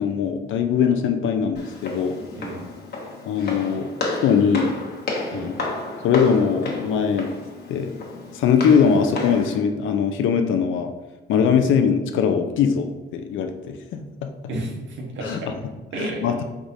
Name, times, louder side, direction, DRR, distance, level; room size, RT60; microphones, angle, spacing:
voice 1, 0.0-2.2 3.3-3.9 4.2-4.7 5.3-5.5 6.0-7.3 7.7-7.9 8.3-10.9 11.3-14.0 15.2-15.5 15.9-16.4, left 7 dB, 80° left, 6 dB, 0.5 m, -21 dB
Walk footsteps, 1.6-9.6, left 2 dB, 55° left, 1.1 m, -32 dB
voice 2, 2.4-2.7 5.3-5.5 11.6-11.7 14.5-16.2, right 2 dB, 75° right, -1 dB, 1.2 m, -32 dB
4.7 x 3.8 x 2.7 m, 1.2 s
cardioid pair, 90°, 20 cm